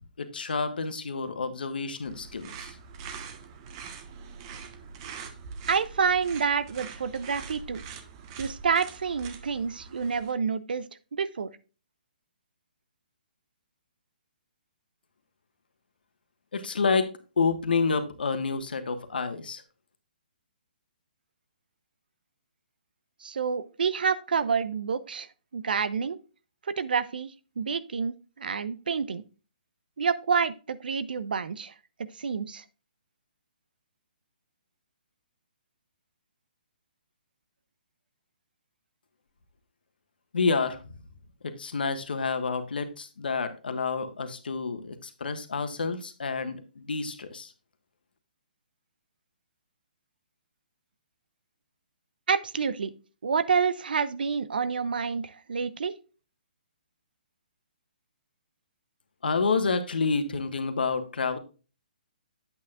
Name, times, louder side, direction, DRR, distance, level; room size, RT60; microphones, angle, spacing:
voice 1, 0.2-2.8 16.5-19.6 40.3-40.8 41.4-47.5 59.2-61.4, left 4 dB, 75° left, 9 dB, 1.4 m, -29 dB
sound 1, 2.0-10.3, right 5 dB, 35° right, 1.1 m, -43 dB
voice 2, 5.7-7.8 8.4-10.9 11.1-11.5 23.2-25.3 25.5-26.2 26.8-29.2 30.0-31.7 32.2-32.6 52.3-52.9 53.2-55.9, right 6 dB, 70° right, 15 dB, 0.7 m, -28 dB
8.5 x 8.5 x 2.4 m, 0.34 s
hypercardioid pair, 145°, 5 cm